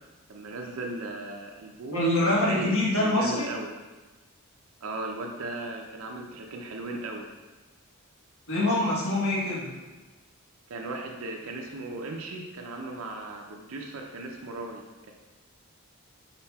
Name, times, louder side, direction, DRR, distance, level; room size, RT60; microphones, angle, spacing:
voice 1, 0.3-3.7 4.8-7.3 10.7-15.1, right 2 dB, 70° right, 1 dB, 0.5 m, -37 dB
voice 2, 1.9-3.4 8.5-9.7, left 1 dB, 70° left, -5 dB, 1.3 m, -25 dB
5.6 x 3.6 x 2.3 m, 1.2 s
head